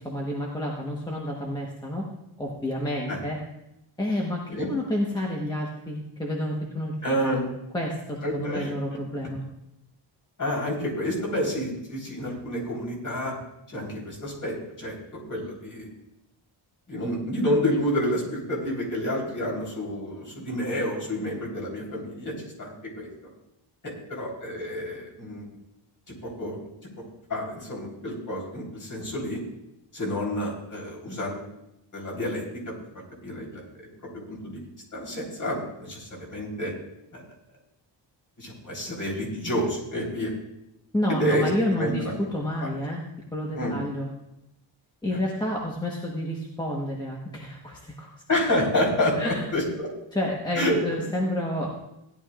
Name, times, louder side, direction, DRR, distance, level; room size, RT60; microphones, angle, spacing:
voice 1, 0.0-2.0 2.4-3.4 4.0-6.9 7.2-7.3 7.7-9.4 40.9-42.0 42.3-43.0 43.3-44.1 45.0-48.1 49.2-49.4 50.1-51.7, left 1 dB, 10° left, -2 dB, 1.2 m, -29 dB
voice 2, 7.0-7.5 8.2-8.7 10.4-13.3 13.7-15.9 16.9-23.1 23.8-25.5 26.1-26.9 27.3-29.4 29.9-31.5 31.9-32.7 33.2-33.6 34.3-36.7 37.1-37.2 38.4-40.3 41.1-42.1 42.6-42.7 43.5-43.8 48.3-49.9 50.5-50.8, left 1 dB, 40° left, -3 dB, 4.0 m, -29 dB
17.0 x 11.0 x 2.5 m, 0.88 s
wide cardioid pair, 175°, 48 cm